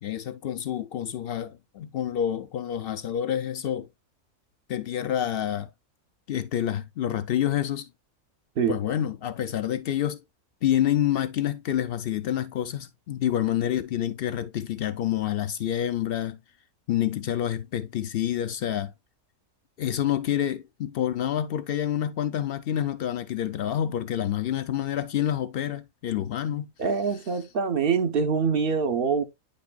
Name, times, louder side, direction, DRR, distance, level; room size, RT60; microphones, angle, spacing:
voice 1, 0.0-3.9 4.7-5.7 6.3-7.9 8.7-10.2 10.6-16.4 16.9-18.9 19.8-26.7, left 11 dB, 75° left, 0.5 m, -28 dB
voice 2, 26.8-29.2, right 5 dB, 50° right, 0.7 m, -24 dB
9.3 x 5.3 x 2.2 m
omnidirectional pair, 1.5 m